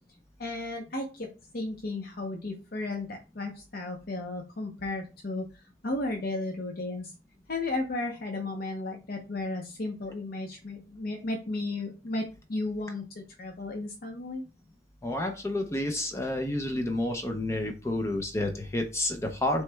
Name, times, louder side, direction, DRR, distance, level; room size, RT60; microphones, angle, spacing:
voice 1, 0.4-1.3 1.5-5.5 5.8-7.1 7.5-14.4, left 2 dB, 55° left, 2 dB, 0.7 m, -34 dB
voice 2, 15.0-19.6, left 1 dB, 15° left, 4 dB, 0.5 m, -30 dB
7.5 x 3.1 x 2.2 m, 0.31 s
head